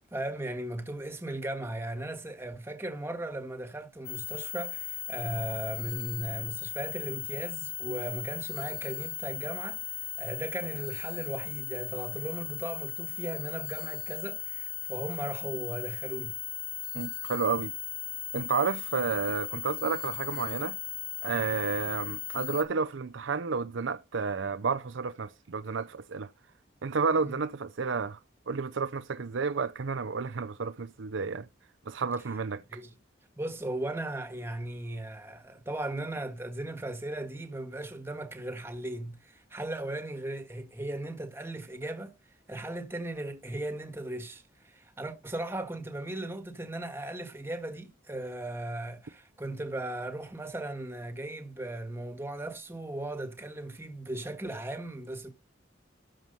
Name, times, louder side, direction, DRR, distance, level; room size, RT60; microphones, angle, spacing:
voice 1, 0.1-9.8 10.2-16.3 27.2-27.4 32.7-32.9 33.4-42.1 42.5-55.3, right 1 dB, 15° right, 1.5 m, -37 dB
sound 1, 4.1-22.6, left 8 dB, 85° left, 1.6 m, -37 dB
voice 2, 16.9-17.7 18.3-20.8 21.2-26.3 26.8-28.2 28.5-31.5 31.9-32.8, right 5 dB, 70° right, 0.6 m, -31 dB
12.5 x 4.7 x 5.4 m
head